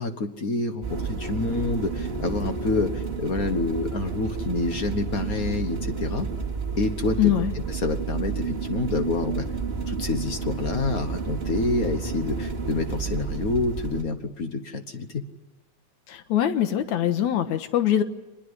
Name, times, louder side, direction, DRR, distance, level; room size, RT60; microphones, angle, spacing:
voice 1, 0.0-6.3 6.8-9.5 9.9-15.3, left 3 dB, 55° left, 8 dB, 1.0 m, -28 dB
sound 1, 0.8-14.0, right 5 dB, 20° right, 2.5 m, -31 dB
voice 2, 7.2-7.5 16.1-18.0, left 11 dB, 80° left, 9 dB, 2.7 m, -23 dB
25.5 x 21.0 x 9.7 m, 1.0 s
omnidirectional pair, 3.3 m